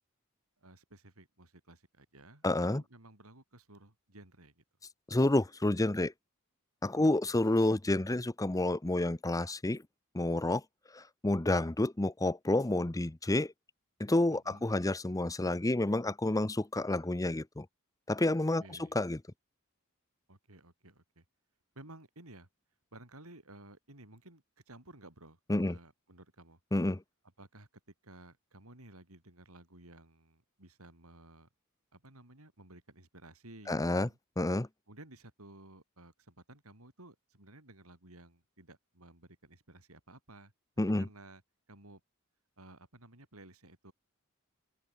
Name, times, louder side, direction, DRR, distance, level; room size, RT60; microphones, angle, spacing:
voice 1, 0.6-2.4 2.7-4.6 6.9-7.3 14.3-14.7 18.6-18.9 20.3-21.2 21.7-22.5 22.9-26.6 27.4-27.7 28.0-31.5 31.9-34.2 34.9-40.5 41.0-41.4 41.7-42.0 42.6-43.9, right 2 dB, 85° right, 6.0 m, -55 dB
voice 2, 2.4-2.8 5.1-6.1 6.8-9.8 10.1-10.6 10.9-13.5 14.0-17.7 18.1-19.2 25.5-25.8 26.7-27.0 33.7-34.1 34.4-34.7 40.8-41.1, left 2 dB, 15° left, 0.7 m, -29 dB
open air
head